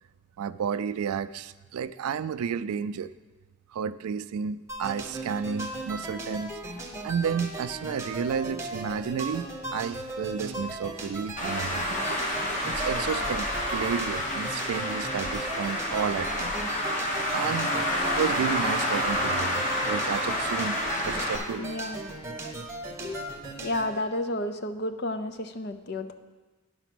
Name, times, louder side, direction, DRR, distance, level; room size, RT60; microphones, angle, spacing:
voice 1, 0.4-3.1 3.7-6.6 7.0-12.2 12.4-16.5 17.3-17.7 18.0-21.7 22.4-22.5, right 7 dB, 90° right, 15 dB, 0.3 m, -32 dB
sound 1, 4.7-23.9, right 2 dB, 10° right, 0.9 m, -37 dB
Traffic noise roadway noise, 11.4-21.4, left 1 dB, 35° left, 1.2 m, -29 dB
voice 2, 21.6-22.0 23.0-23.2 23.6-26.1, left 1 dB, 50° left, 9 dB, 0.6 m, -31 dB
10.0 x 5.9 x 6.0 m, 1.3 s
head